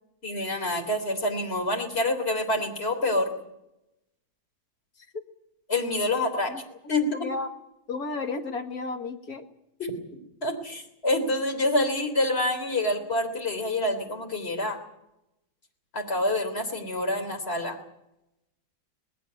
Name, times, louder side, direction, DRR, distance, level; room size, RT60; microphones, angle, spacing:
voice 1, 0.2-3.3 5.7-6.5 6.9-7.1 9.8-9.9 10.4-14.8 15.9-17.8, left 1 dB, 30° left, 5 dB, 3.6 m, -27 dB
voice 2, 6.5-7.5 7.9-9.5, left 3 dB, 50° left, 5 dB, 2.3 m, -33 dB
20.0 x 16.5 x 9.4 m, 0.87 s
omnidirectional pair, 2.1 m